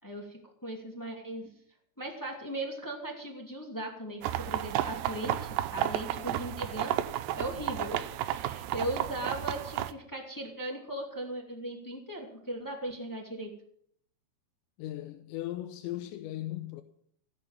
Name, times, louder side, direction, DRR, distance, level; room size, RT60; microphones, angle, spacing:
voice 1, 0.0-1.5 2.0-7.0 7.4-13.5, right 1 dB, 10° left, 1.3 m, -38 dB
sound 1, 4.2-9.9, right 13 dB, 80° right, 2.8 m, -32 dB
voice 2, 14.8-16.8, left 14 dB, 85° left, 3.1 m, -37 dB
16.0 x 10.5 x 7.4 m
omnidirectional pair, 5.1 m